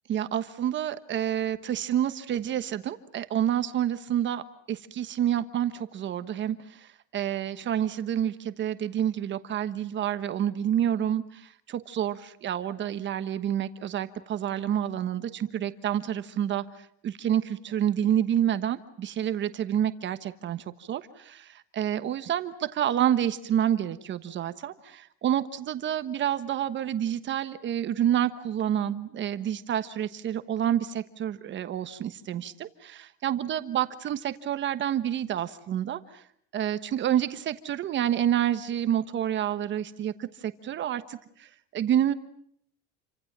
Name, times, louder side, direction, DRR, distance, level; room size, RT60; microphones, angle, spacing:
voice 1, 0.1-36.2 36.5-42.1, right 10 dB, 35° right, 11 dB, 1.3 m, -28 dB
29.5 x 25.5 x 7.4 m, 0.67 s
cardioid pair, 150°, 31 cm